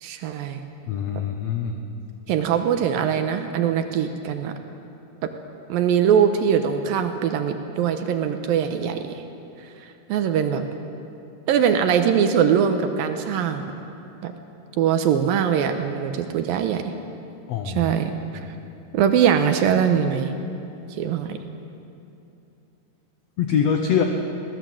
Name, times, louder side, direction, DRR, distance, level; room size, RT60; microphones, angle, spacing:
voice 1, 0.0-0.6 2.3-4.5 5.2-5.3 5.7-9.2 9.6-10.6 11.5-13.7 14.2-14.3 14.7-16.9 17.7-18.5 18.9-20.4 20.9-21.4, right 8 dB, 80° right, 7 dB, 2.7 m, -22 dB
voice 2, 0.9-1.8 17.5-17.9 23.4-24.0, left 7 dB, 65° left, 4 dB, 1.8 m, -23 dB
22.5 x 17.5 x 7.7 m, 2.7 s
omnidirectional pair, 4.2 m